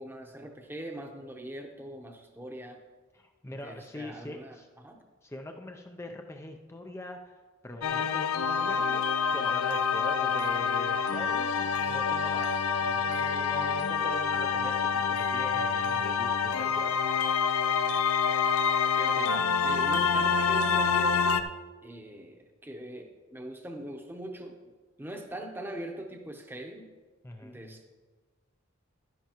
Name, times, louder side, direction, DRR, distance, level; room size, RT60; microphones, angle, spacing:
voice 1, 0.0-2.8 3.5-5.0 19.0-21.4 21.8-24.6 25.0-26.9 27.4-27.9, right 1 dB, 10° right, 3 dB, 0.8 m, -42 dB
voice 2, 3.1-4.7 5.2-7.4 7.6-9.0 9.3-17.0 27.2-27.6, left 1 dB, 10° left, 4 dB, 0.4 m, -43 dB
sound 1, 7.8-21.4, left 6 dB, 90° left, 0.5 m, -27 dB
11.5 x 10.5 x 2.9 m, 1.4 s
head